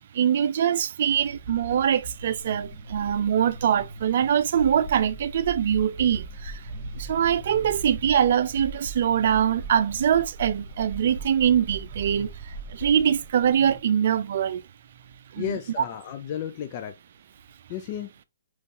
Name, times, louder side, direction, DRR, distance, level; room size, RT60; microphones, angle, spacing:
voice 1, 0.1-6.6 6.9-14.6 15.3-15.4, right 9 dB, 50° right, 0.4 m, -23 dB
sound 1, 1.0-13.8, right 2 dB, 30° right, 1.1 m, -43 dB
sound 2, 4.5-13.0, right 3 dB, 60° left, 0.8 m, -40 dB
voice 2, 15.4-17.0 17.7-18.2, left 10 dB, 35° left, 0.4 m, -33 dB
5.2 x 3.2 x 2.5 m
figure-of-eight pair, 130°, 0 cm